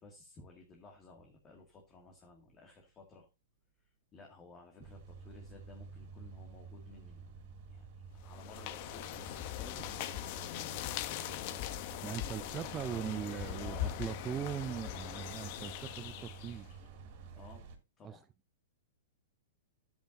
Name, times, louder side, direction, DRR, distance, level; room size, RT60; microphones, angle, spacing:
voice 1, 0.0-3.3 4.1-10.4 12.4-14.0 17.3-17.7 18.0-18.2, left 3 dB, 25° left, 2.1 m, -55 dB
sound 1, 4.8-17.8, right 5 dB, 50° right, 2.7 m, -50 dB
sound 2, 8.2-16.7, left 14 dB, 50° left, 0.8 m, -41 dB
voice 2, 12.0-16.7 18.0-18.2, right 9 dB, 25° right, 0.4 m, -40 dB
10.0 x 8.1 x 2.6 m
hypercardioid pair, 130°, 0 cm